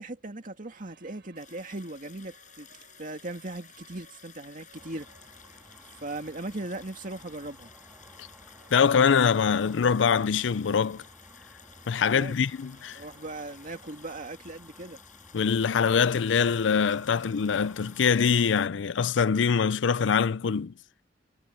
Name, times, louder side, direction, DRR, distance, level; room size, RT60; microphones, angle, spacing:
voice 1, 0.0-2.7 3.0-5.1 6.0-7.7 12.0-12.4 12.9-15.0, right 2 dB, 45° right, 2.3 m, -38 dB
sound 1, 0.7-14.2, right 4 dB, 65° right, 7.9 m, -60 dB
sound 2, 1.4-18.7, left 9 dB, 45° left, 6.6 m, -54 dB
sound 3, 4.7-18.5, equal, 5° right, 2.4 m, -55 dB
voice 2, 8.7-11.0 11.9-13.0 15.3-20.7, left 6 dB, 80° left, 0.5 m, -24 dB
head